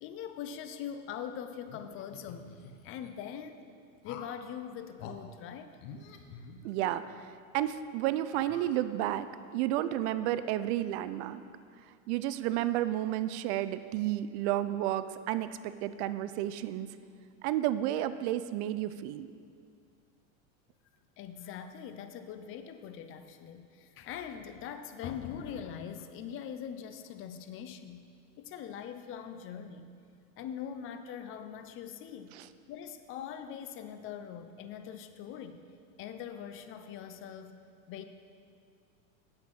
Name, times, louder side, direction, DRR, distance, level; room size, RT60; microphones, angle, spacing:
voice 1, 0.0-2.5 2.8-3.7 4.0-5.7 21.2-28.1 28.4-29.9 30.4-32.3 32.7-35.6 36.0-37.6 37.9-38.0, left 8 dB, 35° left, 9 dB, 0.5 m, -42 dB
sound 1, 1.7-3.1 4.0-4.5 5.0-5.2 5.8-7.0 7.5-7.6 8.3-9.2, left 5 dB, 75° left, 1.0 m, -49 dB
voice 2, 6.6-9.3 9.5-11.4 12.1-16.9 17.4-19.3 32.3-32.5, right 13 dB, 55° right, 13 dB, 0.4 m, -31 dB
8.8 x 7.7 x 5.6 m, 2.2 s
supercardioid pair, 135°, 41 cm